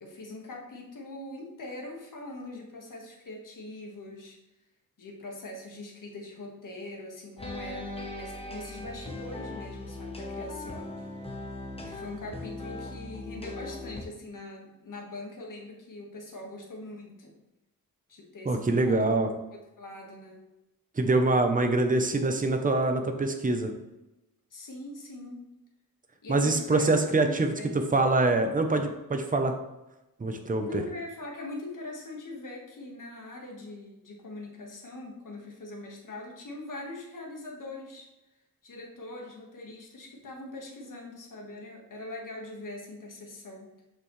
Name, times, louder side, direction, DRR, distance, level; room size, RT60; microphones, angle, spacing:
voice 1, 0.0-4.4 5.0-10.9 11.8-17.3 18.1-19.2 19.5-20.4 24.5-25.4 26.2-27.2 27.6-27.8 30.6-38.1 38.6-43.7, left 2 dB, 60° left, 0 dB, 1.6 m, -42 dB
sound 1, 7.4-14.0, left 2 dB, 15° left, 1.0 m, -39 dB
voice 2, 18.4-19.3 21.0-23.7 26.3-27.5 27.9-29.5 30.2-30.8, right 2 dB, 25° right, 5 dB, 0.7 m, -24 dB
6.8 x 5.7 x 3.2 m, 0.97 s
wide cardioid pair, 125°, 35 cm